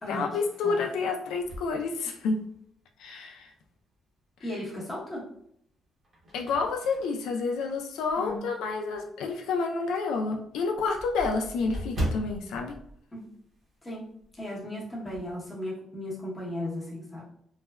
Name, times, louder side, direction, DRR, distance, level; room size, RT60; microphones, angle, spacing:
voice 1, 0.1-2.4 3.0-3.5 6.3-12.8, left 4 dB, 85° left, 2 dB, 0.3 m, -29 dB
sound 1, 1.4-2.7 3.3-3.4 4.8-5.4 5.8-8.5 8.9-9.0 9.4-9.5 9.8-9.9 10.1-13.9 14.2-14.4 14.7-15.3, right 1 dB, 35° right, 0.8 m, -38 dB
voice 2, 4.4-5.2 8.2-8.4 13.1-13.2 13.8-14.1 14.4-17.3, left 1 dB, 15° left, -5 dB, 0.9 m, -36 dB
3.2 x 2.1 x 2.2 m, 0.70 s
cardioid pair, 145°, 0 cm